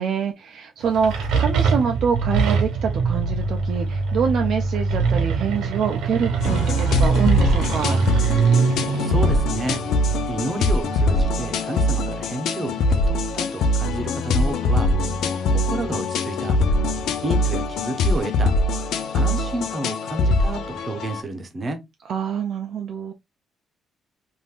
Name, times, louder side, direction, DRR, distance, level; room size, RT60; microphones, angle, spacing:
voice 1, 0.0-8.0 22.1-23.1, right 7 dB, 65° right, 0.4 m, -25 dB
sound 1, 0.8-11.2, right 5 dB, 85° right, 0.8 m, -23 dB
sound 2, 6.4-21.2, left 2 dB, 80° left, 0.4 m, -22 dB
voice 2, 9.0-9.9 10.3-14.9 15.5-16.6 17.2-18.5 19.1-21.8, right 2 dB, 40° right, 0.8 m, -30 dB
3.5 x 2.5 x 2.3 m
cardioid pair, 90°, 0 cm